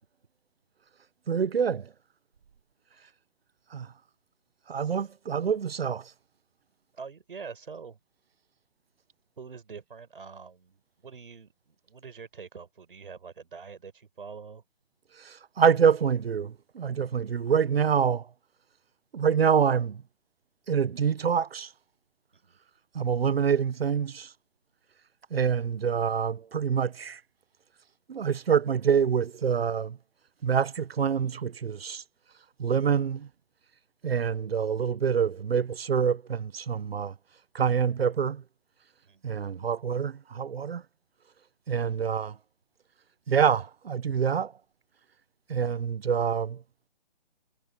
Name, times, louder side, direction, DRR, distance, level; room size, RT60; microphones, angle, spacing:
voice 1, 1.3-1.9 3.7-3.9 4.7-6.1 15.2-18.3 19.1-20.0 20.7-21.7 22.9-24.3 25.3-27.2 28.1-30.0 30.4-32.0 32.6-33.3 34.0-37.1 37.5-38.4 39.2-40.8 41.7-42.3 43.3-44.5 45.5-46.6, right 7 dB, 85° right, 1.0 m, -26 dB
voice 2, 6.9-8.0 9.4-14.6 22.3-22.6 39.0-39.5, right 5 dB, 65° right, 5.3 m, -45 dB
hypercardioid pair, 175°, 29 cm